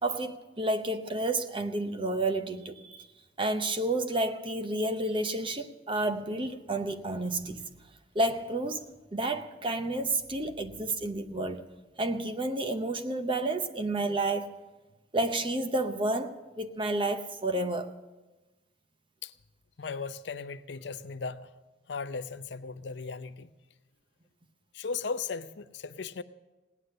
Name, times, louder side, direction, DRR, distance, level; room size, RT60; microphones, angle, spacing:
voice 1, 0.0-3.1 3.4-7.6 8.1-8.8 9.1-11.6 12.0-14.5 15.1-17.9, right 2 dB, 25° right, 0.7 m, -30 dB
voice 2, 19.8-21.5 21.9-23.5 24.7-26.2, left 5 dB, 65° left, 0.5 m, -37 dB
17.5 x 9.7 x 6.6 m
head